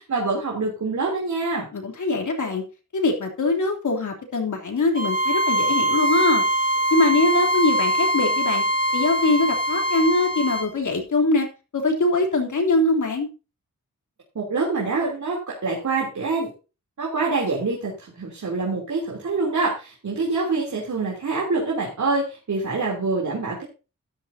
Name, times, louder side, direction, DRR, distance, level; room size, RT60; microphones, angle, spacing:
voice 1, 0.0-1.7 14.3-16.5 17.0-23.6, right 3 dB, 65° right, -3 dB, 3.4 m, -25 dB
voice 2, 1.7-2.6 2.9-6.4 6.9-8.6 8.9-11.5 11.7-13.3, left 2 dB, 65° left, 2 dB, 3.3 m, -22 dB
Bowed string instrument, 4.9-10.7, right 1 dB, 25° right, 1.9 m, -22 dB
13.0 x 12.0 x 2.8 m, 0.32 s
wide cardioid pair, 95°, 32 cm